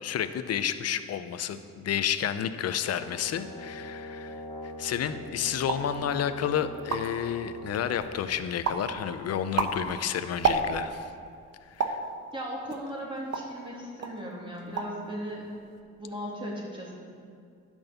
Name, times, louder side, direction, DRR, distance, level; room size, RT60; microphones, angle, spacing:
voice 1, 0.0-4.4 4.8-11.1 11.7-12.0, left 9 dB, 55° left, 11 dB, 0.7 m, -30 dB
Brass instrument, 2.9-8.4, left 2 dB, 20° left, 1.1 m, -42 dB
sound 1, 5.6-6.0 6.5-6.6 6.7-7.3 7.8-8.2 8.6-8.9 9.3-11.0 11.8-12.1 12.7-13.6 14.0-14.2 14.5-15.0 15.3-15.8, right 5 dB, 55° right, 1.1 m, -30 dB
voice 2, 12.3-15.5 16.0-16.9, equal, 15° right, -4 dB, 3.0 m, -37 dB
10.5 x 6.3 x 6.8 m, 2.2 s
cardioid pair, 90°, 30 cm